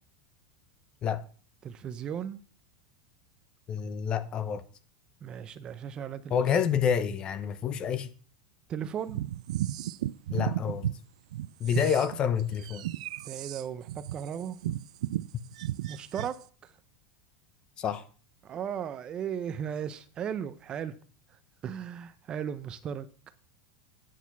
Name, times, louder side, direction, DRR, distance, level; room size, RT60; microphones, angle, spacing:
voice 1, 1.6-2.4 5.2-6.5 8.7-9.2 13.2-14.6 15.9-16.7 18.4-21.0 21.6-23.1, right 8 dB, 25° right, 0.6 m, -36 dB
voice 2, 3.7-4.6 6.3-8.1 10.3-10.9 11.6-12.8 17.8-18.0, left 7 dB, 25° left, 0.7 m, -28 dB
sound 1, 9.1-11.0 11.3-16.4, right 13 dB, 90° right, 0.3 m, -34 dB
9.3 x 6.4 x 5.9 m
supercardioid pair, 155°, 4 cm